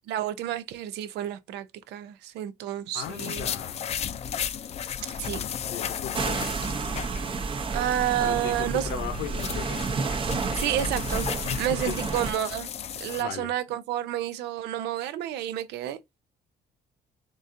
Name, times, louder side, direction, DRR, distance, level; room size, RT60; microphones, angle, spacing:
voice 1, 0.1-3.5 5.1-5.4 7.7-9.0 10.5-11.3 11.6-12.7 13.0-16.0, right 11 dB, 80° right, 0.6 m, -30 dB
voice 2, 2.9-3.8 5.7-6.4 8.2-9.9 11.5-12.0 13.0-13.5, left 10 dB, 75° left, 0.8 m, -37 dB
sound 1, 3.0-7.5 7.8-7.9 8.8-13.2, left 8 dB, 40° left, 0.4 m, -34 dB
sound 2, 6.1-12.3, right 4 dB, 30° right, 0.7 m, -30 dB
3.9 x 3.7 x 2.6 m
cardioid pair, 110°, 17 cm